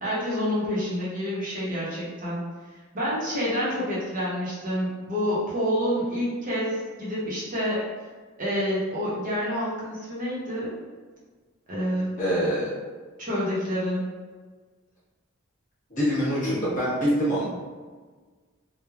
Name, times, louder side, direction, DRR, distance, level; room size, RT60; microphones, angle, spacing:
voice 1, 0.0-2.4 2.9-7.8 8.4-10.7 11.7-12.1 13.2-14.1, equal, 40° right, -7 dB, 0.7 m, -28 dB
voice 2, 12.2-12.7 15.9-17.4, equal, 40° left, -9 dB, 1.0 m, -24 dB
3.1 x 2.1 x 2.3 m, 1.4 s
head